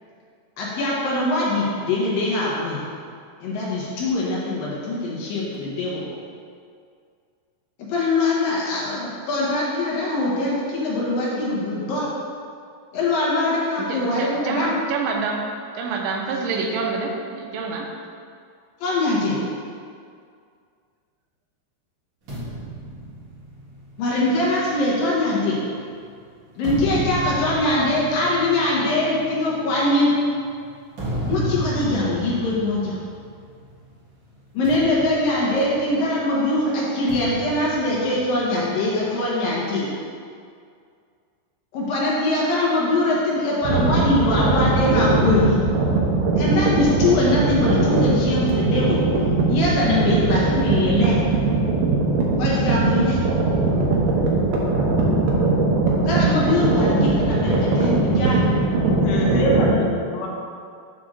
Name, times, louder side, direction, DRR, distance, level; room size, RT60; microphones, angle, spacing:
voice 1, 0.6-2.8 3.4-6.1 7.8-12.1 12.9-14.7 18.8-19.4 24.0-25.6 26.6-30.1 31.2-33.0 34.5-39.9 41.7-45.6 46.4-49.0 49.5-51.2 52.4-53.2 56.0-58.4 59.3-59.8, left 2 dB, 70° left, 2.5 m, -22 dB
voice 2, 13.9-15.5 15.8-17.9, right 4 dB, 85° right, 2.8 m, -27 dB
sound 1, 22.3-25.9 26.4-33.8 34.1-34.3 34.6-36.3 37.1-38.8, right 1 dB, 45° right, 2.2 m, -33 dB
sound 2, 43.6-59.7, right 3 dB, 70° right, 2.2 m, -20 dB
voice 3, 58.8-60.3, left 3 dB, 85° left, 3.1 m, -31 dB
7.4 x 3.4 x 6.3 m
omnidirectional pair, 4.9 m